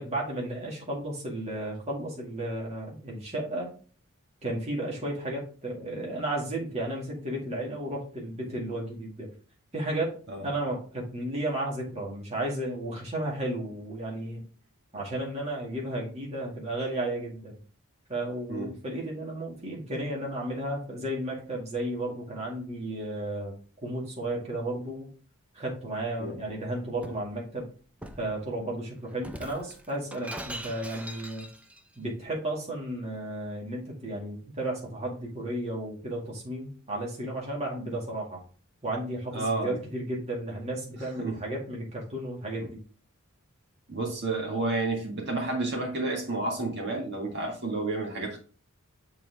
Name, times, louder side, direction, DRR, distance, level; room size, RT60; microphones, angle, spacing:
voice 1, 0.0-3.7 4.4-9.3 9.7-14.4 14.9-17.6 18.1-25.1 25.5-27.7 28.2-31.5 32.0-38.4 38.8-42.8, right 1 dB, 30° right, 2.2 m, -33 dB
Shatter, 26.4-27.3 28.0-28.3 29.2-31.8, right 1 dB, 5° right, 0.6 m, -42 dB
voice 2, 39.3-39.8 41.2-41.4 43.9-48.4, right 2 dB, 50° right, 2.2 m, -30 dB
6.9 x 4.5 x 3.5 m
head